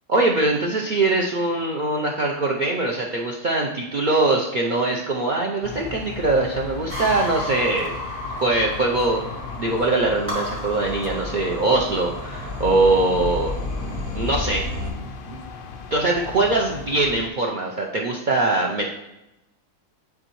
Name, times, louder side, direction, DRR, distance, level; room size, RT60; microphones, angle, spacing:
voice 1, 0.1-8.0 8.4-9.2 9.6-13.5 14.1-14.7 15.0-15.4 15.9-18.9, right 2 dB, 90° right, -1 dB, 0.4 m, -22 dB
sound 1, 5.6-17.3, left 5 dB, 70° left, 0.5 m, -37 dB
sound 2, 6.9-14.9, left 1 dB, 10° right, 2.3 m, -32 dB
9.6 x 3.9 x 3.0 m, 0.93 s
omnidirectional pair, 1.6 m